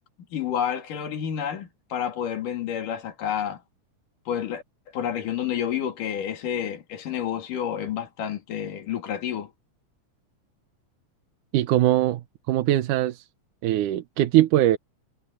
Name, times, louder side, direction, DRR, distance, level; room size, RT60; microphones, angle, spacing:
voice 1, 0.3-3.6 4.3-4.6 4.9-9.5, left 9 dB, 90° left, 3.9 m, -29 dB
voice 2, 11.5-12.2 12.5-13.2 13.6-14.8, right 13 dB, 80° right, 2.4 m, -21 dB
omnidirectional pair, 3.6 m